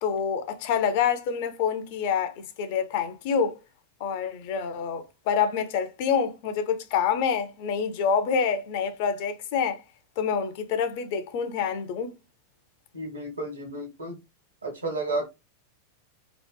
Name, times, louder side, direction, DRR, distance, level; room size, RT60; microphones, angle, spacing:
voice 1, 0.0-3.6 4.0-9.8 10.2-12.1, left 7 dB, 50° left, 0.4 m, -27 dB
voice 2, 12.9-14.2 14.6-15.3, right 2 dB, 75° right, 0.9 m, -32 dB
2.7 x 2.0 x 2.2 m
figure-of-eight pair, 90°, 0 cm